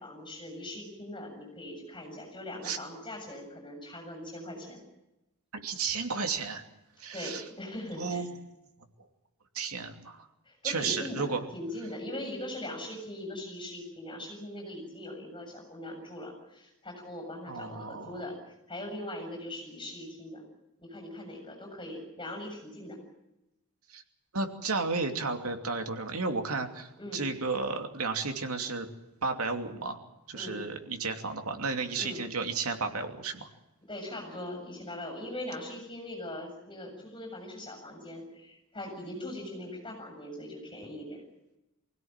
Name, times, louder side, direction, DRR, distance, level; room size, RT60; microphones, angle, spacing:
voice 1, 0.0-4.8 7.1-8.2 10.4-20.4 20.8-23.0 27.0-27.2 30.3-30.6 32.0-32.2 33.9-41.2, left 1 dB, 20° left, 2 dB, 7.1 m, -41 dB
voice 2, 5.5-6.6 7.0-7.4 8.0-8.3 9.5-10.3 10.6-11.4 17.5-18.2 23.9-24.0 24.3-28.9 29.2-30.0 30.3-33.5, right 4 dB, 90° right, 5 dB, 2.8 m, -33 dB
25.0 x 17.0 x 9.0 m, 0.96 s
head